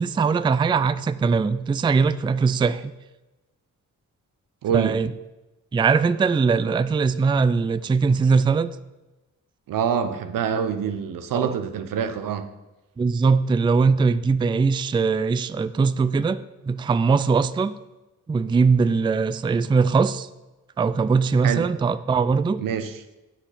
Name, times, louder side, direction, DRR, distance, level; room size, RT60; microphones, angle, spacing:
voice 1, 0.0-2.9 4.7-5.1 5.7-8.7 11.3-11.5 13.0-16.4 16.6-17.7 18.3-20.3 20.8-22.6, right 5 dB, 15° right, 14 dB, 0.3 m, -21 dB
voice 2, 4.6-5.0 9.7-12.5 21.4-21.7 22.6-22.9, right 7 dB, 85° right, 9 dB, 0.7 m, -25 dB
8.0 x 4.3 x 5.7 m, 1.1 s
cardioid pair, 70°, 33 cm